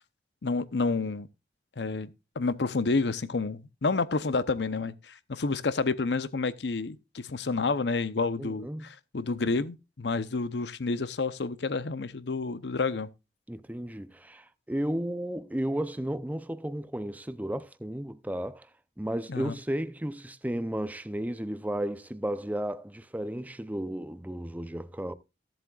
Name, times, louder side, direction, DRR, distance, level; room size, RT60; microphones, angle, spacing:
voice 1, 0.4-1.3 1.8-13.1 19.3-19.6, left 3 dB, 80° left, 0.7 m, -29 dB
voice 2, 8.4-8.9 13.5-18.7 19.0-25.1, right 1 dB, 10° right, 0.6 m, -33 dB
16.0 x 7.5 x 2.4 m
head